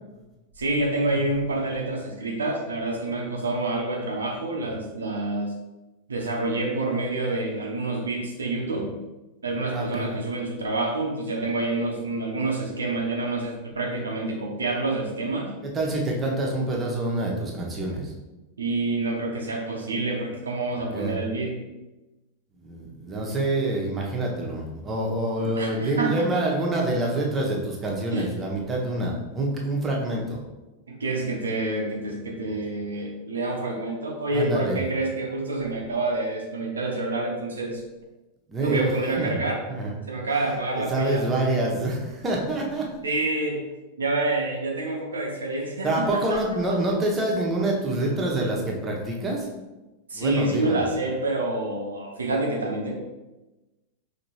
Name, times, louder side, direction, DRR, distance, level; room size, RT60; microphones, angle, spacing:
voice 1, 0.6-5.5 6.1-8.9 9.4-15.5 18.6-21.6 25.4-26.2 28.1-28.3 30.9-37.8 38.6-39.6 40.1-41.2 43.0-43.7 44.0-46.4 50.1-52.9, right 2 dB, 70° right, 0 dB, 0.7 m, -27 dB
voice 2, 9.7-10.1 15.6-18.1 20.9-21.2 22.6-30.4 34.3-34.8 38.5-38.8 39.2-39.3 39.7-39.9 40.3-42.9 45.8-49.6 50.1-50.8, right 1 dB, 20° right, -2 dB, 1.0 m, -26 dB
5.1 x 2.9 x 2.9 m, 1.1 s
figure-of-eight pair, 90°, 0 cm